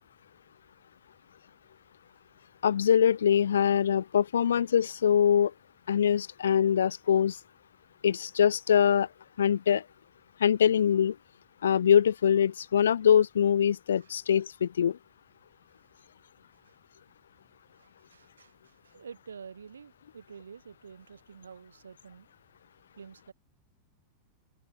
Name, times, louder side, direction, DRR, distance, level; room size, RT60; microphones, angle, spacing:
voice 1, 2.6-5.5 5.9-7.4 8.0-9.1 9.4-9.8 10.4-11.2 11.6-15.0, left 8 dB, 65° left, 0.3 m, -23 dB
voice 2, 17.7-22.3 23.0-23.3, right 6 dB, 70° right, 4.5 m, -49 dB
figure-of-eight pair, 90°, 0 cm